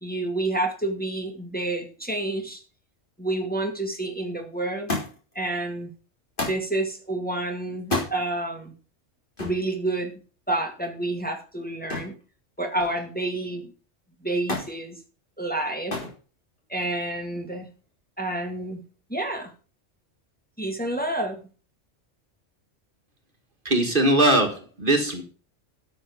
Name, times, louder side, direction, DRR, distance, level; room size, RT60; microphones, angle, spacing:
voice 1, 0.0-2.6 3.2-4.9 5.4-5.9 6.4-8.7 9.4-10.1 10.5-12.2 12.6-13.7 14.2-15.0 15.4-16.0 16.7-17.7 18.2-18.8 19.1-19.5 20.6-21.4, right 2 dB, 5° left, 3 dB, 1.9 m, -29 dB
Thump thud, 4.9-5.4 6.4-6.7 7.8-8.2 9.4-9.6 11.9-12.2 12.6-13.1 14.5-14.8 15.9-16.2 17.1-17.6 18.6-18.7, left 2 dB, 45° left, 4.1 m, -30 dB
voice 2, 23.7-25.2, right 1 dB, 45° right, 5 dB, 1.7 m, -21 dB
12.5 x 6.6 x 5.3 m, 0.36 s
omnidirectional pair, 1.2 m